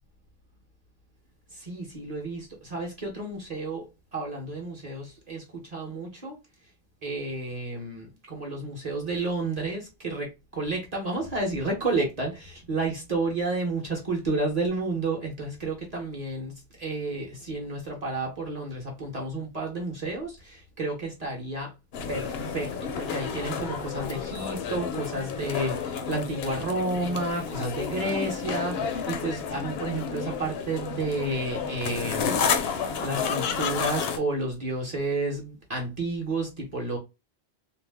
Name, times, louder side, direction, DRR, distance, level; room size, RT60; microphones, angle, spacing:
voice 1, 1.5-6.4 7.0-21.7 22.1-37.0, right 2 dB, 40° right, 0.9 m, -31 dB
sound 1, 21.9-34.2, left 6 dB, 75° left, 0.8 m, -31 dB
2.6 x 2.0 x 3.3 m
omnidirectional pair, 1.1 m